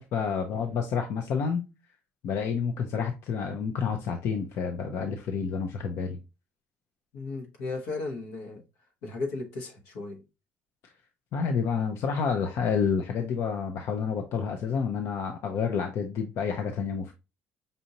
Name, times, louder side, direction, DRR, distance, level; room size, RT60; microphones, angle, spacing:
voice 1, 0.0-1.7 2.2-6.2 11.3-17.1, left 6 dB, 65° left, 0.6 m, -29 dB
voice 2, 7.1-8.6 9.0-10.2, left 3 dB, 85° left, 1.1 m, -35 dB
5.4 x 2.6 x 2.8 m
supercardioid pair, 80°, 5 cm